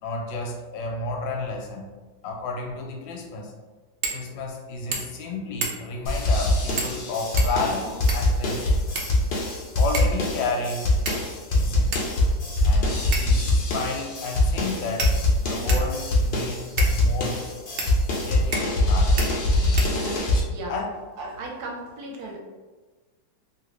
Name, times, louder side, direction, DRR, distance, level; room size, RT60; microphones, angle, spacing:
voice 1, 0.0-1.9 2.2-3.5 4.1-8.7 9.8-11.0 11.5-12.0 12.6-15.1 15.4-17.4 18.1-19.2 20.7-20.9, left 3 dB, 90° left, 1 dB, 1.3 m, -31 dB
sound 1, 4.0-4.2 4.5-4.6 4.9-5.2 5.6-6.0 6.8-7.0 7.4-8.4 8.9-9.5 9.9-10.2 11.1-11.5 11.9-12.1 13.1-13.5 14.3-14.4 15.0-15.9 16.8-17.0 17.8-17.9 18.5-18.9 19.2-19.3 19.8-20.3, right 3 dB, 90° right, 0.6 m, -31 dB
sound 2, 6.0-20.4, left 1 dB, 70° left, 0.5 m, -23 dB
voice 2, 21.2-22.4, right 2 dB, 70° right, 0 dB, 1.0 m, -35 dB
2.9 x 2.8 x 3.0 m, 1.3 s
omnidirectional pair, 2.0 m